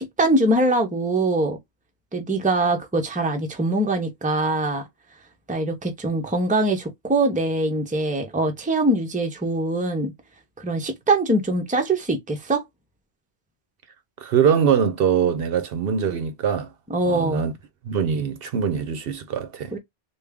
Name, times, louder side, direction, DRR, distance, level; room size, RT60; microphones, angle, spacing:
voice 1, 0.0-1.6 2.1-4.9 5.5-10.1 10.6-12.6 16.9-17.4 19.7-19.8, right 2 dB, 10° right, 0.6 m, -23 dB
voice 2, 14.2-16.7 17.1-17.5 17.8-19.7, right 7 dB, 65° right, 0.7 m, -22 dB
3.4 x 2.4 x 3.4 m
omnidirectional pair, 1.1 m